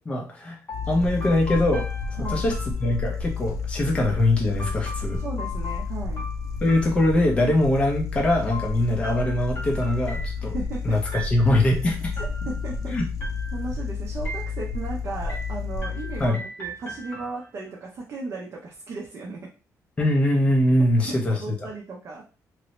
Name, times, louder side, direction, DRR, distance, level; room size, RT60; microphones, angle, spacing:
voice 1, 0.1-0.6 0.9-1.8 2.2-2.5 2.8-5.2 6.6-10.6 10.8-12.1 12.9-13.0 16.2-16.4 20.0-21.5, left 1 dB, 20° left, 0 dB, 0.7 m, -22 dB
sound 1, 0.7-16.3, left 5 dB, 65° left, 0.5 m, -31 dB
sound 2, 0.7-3.4 4.6-7.6 8.5-10.7 11.1-11.7 12.2-12.8 13.2-13.8 14.2-14.9 15.3-17.8, equal, 35° left, 1.0 m, -39 dB
voice 2, 2.1-2.5 5.2-6.3 8.7-9.0 10.4-11.0 12.2-13.0 13.5-19.5 21.0-22.2, right 3 dB, 45° right, -1 dB, 0.6 m, -36 dB
2.9 x 2.7 x 3.1 m, 0.34 s
cardioid pair, 165°, 6 cm